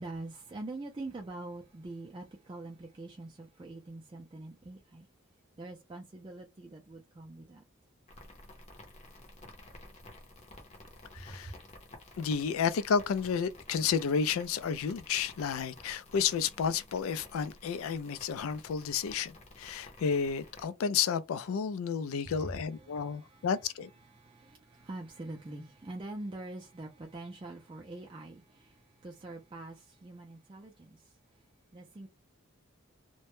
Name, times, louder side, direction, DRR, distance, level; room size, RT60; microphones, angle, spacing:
voice 1, 0.0-5.1 5.6-7.6 11.1-11.6 22.2-23.5 24.0-31.4 31.7-32.1, right 2 dB, 25° right, 0.3 m, -44 dB
sound 1, 8.1-20.7, left 2 dB, 30° left, 0.6 m, -53 dB
voice 2, 11.1-11.5 12.2-23.9, left 6 dB, 80° left, 0.3 m, -31 dB
2.1 x 2.0 x 2.9 m
head